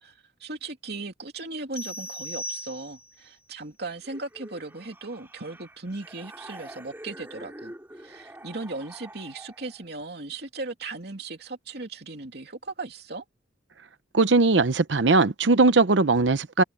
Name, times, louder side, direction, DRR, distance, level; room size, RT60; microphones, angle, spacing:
voice 1, 0.0-13.2, right 3 dB, 65° right, 2.9 m, -37 dB
sound 1, 1.7-3.3, equal, 35° left, 7.4 m, -37 dB
sound 2, 4.0-9.9, right 1 dB, 15° right, 6.9 m, -46 dB
voice 2, 14.1-16.6, right 3 dB, 85° right, 0.8 m, -19 dB
head